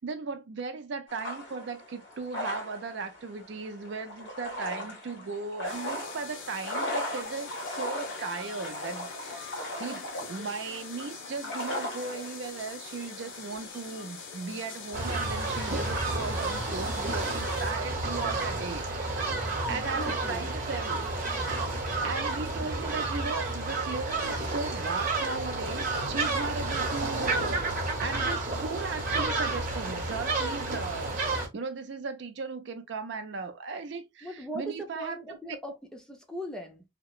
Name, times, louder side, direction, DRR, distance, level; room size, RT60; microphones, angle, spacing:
voice 1, 0.0-21.7 22.0-27.7 28.0-35.2, right 4 dB, 65° right, 0.4 m, -37 dB
sound 1, 1.1-15.7, left 1 dB, 65° left, 1.5 m, -39 dB
sound 2, 5.6-17.7, left 5 dB, 90° left, 0.6 m, -43 dB
sound 3, 14.9-31.5, right 3 dB, 45° right, 1.0 m, -30 dB
voice 2, 19.7-20.5 34.2-36.8, right 1 dB, 5° left, 0.4 m, -39 dB
2.8 x 2.1 x 2.3 m
head